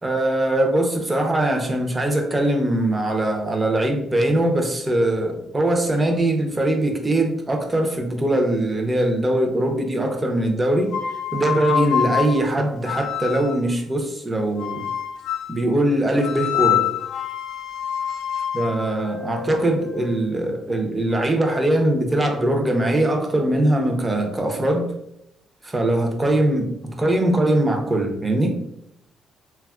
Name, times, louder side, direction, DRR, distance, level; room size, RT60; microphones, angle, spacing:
voice 1, 0.0-10.9 11.3-14.8 15.5-16.9 18.5-24.9 25.6-26.7 27.0-28.6, right 1 dB, 20° right, 3 dB, 0.6 m, -21 dB
sound 1, 10.9-13.7 14.6-15.6 16.2-20.2, left 9 dB, 80° left, 0.5 m, -26 dB
3.5 x 2.3 x 2.3 m, 0.76 s
cardioid pair, 90°, 0 cm